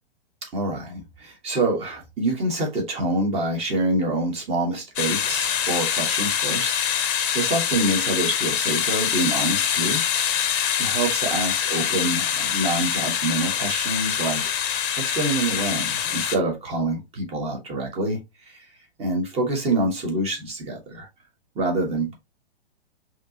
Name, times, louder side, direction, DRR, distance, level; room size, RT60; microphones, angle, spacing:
voice 1, 0.4-10.4 10.8-18.7 19.0-21.1 21.5-22.1, right 2 dB, 20° right, 1.4 m, -26 dB
sound 1, 5.0-16.4, left 9 dB, 25° left, 0.7 m, -24 dB
5.1 x 3.1 x 2.8 m
figure-of-eight pair, 110°, 31 cm